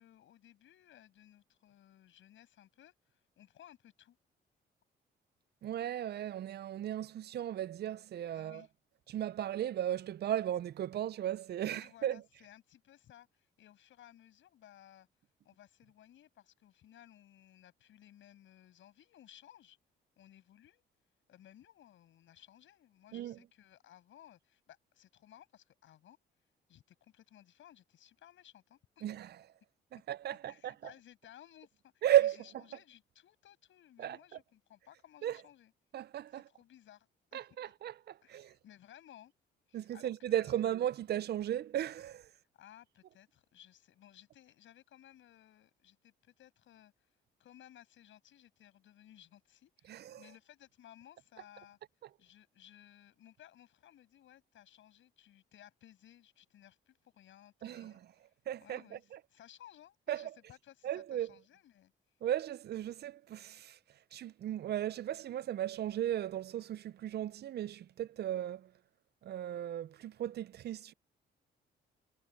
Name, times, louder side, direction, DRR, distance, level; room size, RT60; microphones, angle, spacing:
voice 1, 0.0-4.2 8.3-8.7 11.6-15.1 15.4-19.8 20.2-20.8 21.3-26.2 26.7-29.1 30.5-35.7 36.3-37.4 37.7-37.8 38.2-39.3 39.7-40.6 42.5-47.1 47.4-51.8 52.2-58.3 58.6-61.9, left 11 dB, 75° left, 7.6 m, -59 dB
voice 2, 5.6-8.7 9.1-12.2 23.1-23.4 29.0-29.4 29.9-30.9 32.0-32.4 34.0-34.2 35.2-35.4 35.9-36.4 37.3-38.5 39.7-42.3 49.8-50.2 57.6-58.0 58.5-59.2 60.1-60.3 60.8-61.3 62.2-63.8 64.1-68.7 69.2-70.9, right 11 dB, 55° right, 0.5 m, -35 dB
cardioid pair, 90°, 20 cm